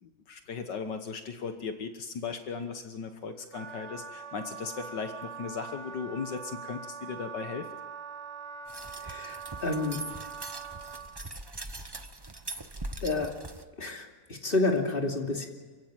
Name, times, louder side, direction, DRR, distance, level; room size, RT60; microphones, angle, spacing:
voice 1, 0.0-7.7, left 5 dB, 75° left, 7 dB, 1.9 m, -37 dB
Wind instrument woodwind instrument, 3.5-11.1, right 6 dB, 75° right, 2.9 m, -43 dB
sound 1, 8.7-13.6, right 2 dB, 20° right, 0.8 m, -41 dB
voice 2, 9.0-10.2 13.0-13.5 13.8-15.5, left 3 dB, 30° left, 2 dB, 2.9 m, -30 dB
28.5 x 16.0 x 9.1 m, 1.4 s
omnidirectional pair, 1.9 m